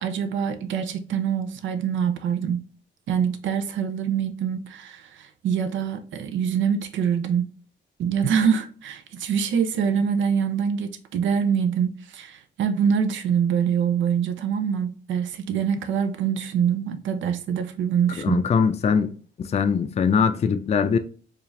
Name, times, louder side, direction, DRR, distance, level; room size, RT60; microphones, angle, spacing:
voice 1, 0.0-2.6 3.1-7.5 8.0-18.4, right 7 dB, 75° right, 0.6 m, -25 dB
voice 2, 18.2-19.1 19.4-21.0, left 6 dB, 30° left, 0.4 m, -21 dB
4.7 x 2.5 x 3.2 m
cardioid pair, 90°, 20 cm